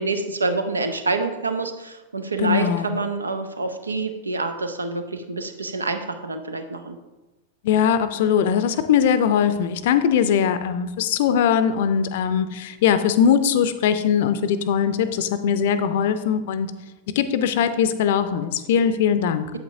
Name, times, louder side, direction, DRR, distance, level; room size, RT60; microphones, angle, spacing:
voice 1, 0.0-7.0, right 3 dB, 75° right, 8 dB, 0.6 m, -27 dB
voice 2, 2.4-2.9 7.6-16.7 17.1-19.5, left 8 dB, 55° left, 11 dB, 0.5 m, -21 dB
8.6 x 7.8 x 2.7 m, 1.1 s
figure-of-eight pair, 90°, 0 cm